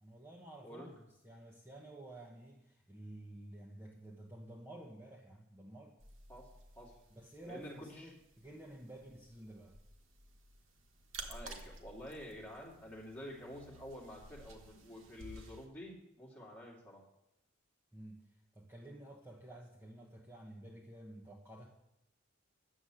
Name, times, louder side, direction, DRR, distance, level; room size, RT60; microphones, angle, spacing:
voice 1, 0.0-6.0 7.1-9.8 17.9-18.2 18.5-21.7, right 1 dB, 10° right, -2 dB, 1.0 m, -52 dB
sound 1, 6.0-15.7, right 2 dB, 85° right, 1.5 m, -54 dB
voice 2, 7.4-8.1 11.3-17.0, equal, 10° left, -4 dB, 2.7 m, -49 dB
9.9 x 7.2 x 7.6 m, 0.83 s
head